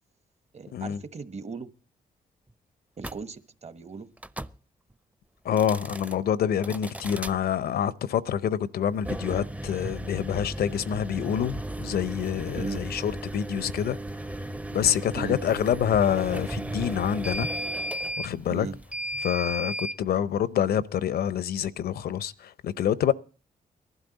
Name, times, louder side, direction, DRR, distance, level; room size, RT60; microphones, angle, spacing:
voice 1, 0.5-1.7 3.0-4.1 12.5-12.8 15.2-15.4 18.5-18.7, right 4 dB, 45° right, 1.2 m, -37 dB
sound 1, 3.0-3.2 4.2-4.6 5.5-6.2 6.6-7.4 8.9-20.0, right 1 dB, 10° right, 0.6 m, -35 dB
voice 2, 5.4-14.0 14.7-17.5 18.2-18.7 19.2-23.1, left 9 dB, 75° left, 0.7 m, -27 dB
19.0 x 12.0 x 4.0 m
cardioid pair, 60°, 16 cm